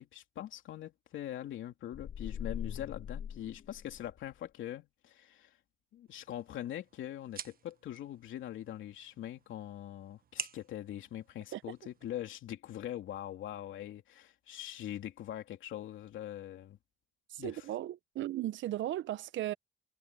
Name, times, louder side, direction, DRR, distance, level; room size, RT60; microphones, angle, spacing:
voice 1, 0.0-5.6 5.9-16.8 17.4-17.6, left 12 dB, 75° left, 3.1 m, -42 dB
sound 1, 1.9-4.3, left 8 dB, 60° left, 1.3 m, -42 dB
sound 2, 6.1-12.1, right 8 dB, 45° right, 1.1 m, -49 dB
voice 2, 17.3-19.5, right 14 dB, 75° right, 0.7 m, -36 dB
cardioid pair, 90°, 20 cm